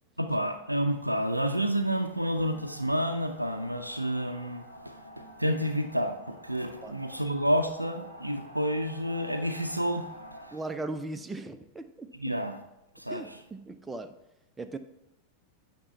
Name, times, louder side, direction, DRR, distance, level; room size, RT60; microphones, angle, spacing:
voice 1, 0.2-10.5 12.2-12.6 13.0-13.2, equal, 90° right, 6 dB, 0.4 m, -30 dB
sound 1, 1.4-10.5, equal, 90° left, 1.3 m, -49 dB
voice 2, 10.5-12.4 13.1-14.1 14.6-14.8, right 2 dB, 10° right, 8 dB, 0.4 m, -38 dB
8.5 x 3.0 x 5.4 m, 0.89 s
figure-of-eight pair, 90°, 0 cm